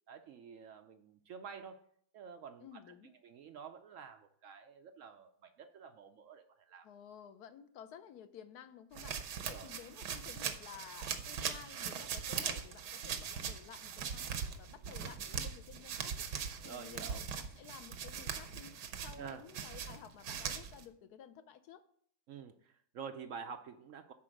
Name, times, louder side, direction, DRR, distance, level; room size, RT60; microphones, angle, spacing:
voice 1, 0.1-1.8 2.1-2.7 3.2-6.9 9.4-9.7 16.6-17.2 19.2-19.4 22.3-24.1, right 6 dB, 70° right, 8 dB, 0.8 m, -49 dB
voice 2, 2.6-3.1 6.8-9.1 9.4-16.2 16.6-18.8 19.0-21.8, left 8 dB, 75° left, 11 dB, 1.2 m, -53 dB
sound 1, 8.9-20.8, right 7 dB, 85° right, 1.4 m, -41 dB
9.8 x 4.2 x 6.3 m, 0.64 s
omnidirectional pair, 1.7 m